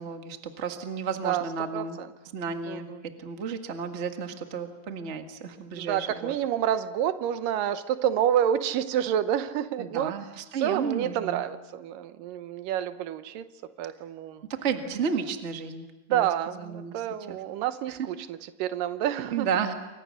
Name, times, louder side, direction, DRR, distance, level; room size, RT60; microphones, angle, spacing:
voice 1, 0.0-2.0 2.3-2.9 3.2-6.3 9.8-11.4 14.5-17.4 17.9-18.0 19.3-19.7, right 6 dB, 35° right, 5 dB, 1.2 m, -32 dB
voice 2, 1.7-2.1 2.7-3.0 5.8-10.1 10.6-13.5 13.8-14.5 16.1-19.5, right 10 dB, 85° right, 11 dB, 2.6 m, -28 dB
29.0 x 24.0 x 6.5 m, 1.1 s
omnidirectional pair, 3.8 m